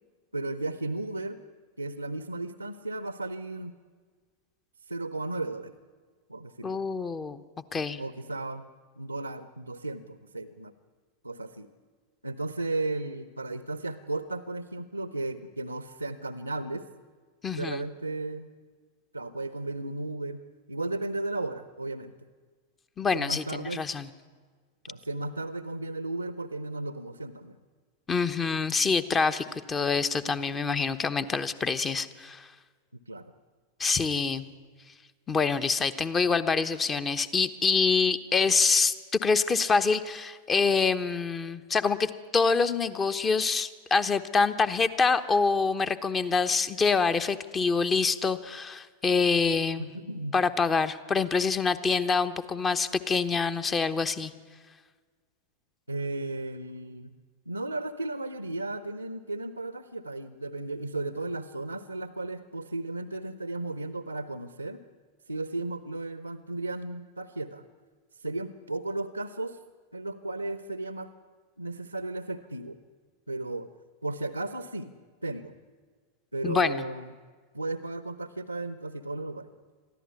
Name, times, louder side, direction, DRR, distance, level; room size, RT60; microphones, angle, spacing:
voice 1, 0.3-1.4 1.8-3.8 4.9-5.7 6.3-6.8 8.0-8.6 9.0-10.7 11.2-11.7 12.2-16.9 17.5-18.5 19.1-20.4 20.7-22.1 23.1-23.9 24.9-27.6 33.1-33.2 49.8-50.4 55.9-57.1 57.5-64.8 65.3-67.6 68.2-69.6 69.9-71.1 71.6-72.8 73.3-73.7 74.0-74.9 75.2-75.5 76.3-77.1 77.5-79.5, right 2 dB, 85° right, 13 dB, 0.8 m, -35 dB
voice 2, 6.6-7.4 7.7-8.0 17.4-17.8 23.0-24.1 28.1-32.5 33.8-34.5 35.3-38.9 39.2-49.9 50.3-54.3 76.4-76.8, left 4 dB, 20° left, 12 dB, 1.0 m, -26 dB
22.5 x 14.5 x 9.7 m, 1.5 s
figure-of-eight pair, 90°, 0 cm